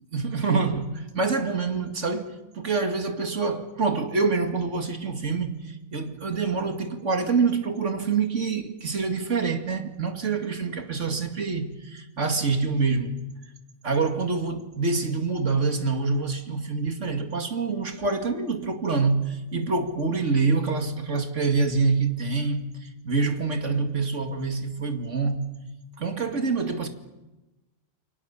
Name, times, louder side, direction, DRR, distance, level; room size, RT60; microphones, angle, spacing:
voice 1, 0.1-13.2 13.8-22.7 23.0-25.5 26.0-26.9, right 4 dB, 55° right, 2.6 m, -26 dB
29.0 x 24.5 x 7.1 m
omnidirectional pair, 1.5 m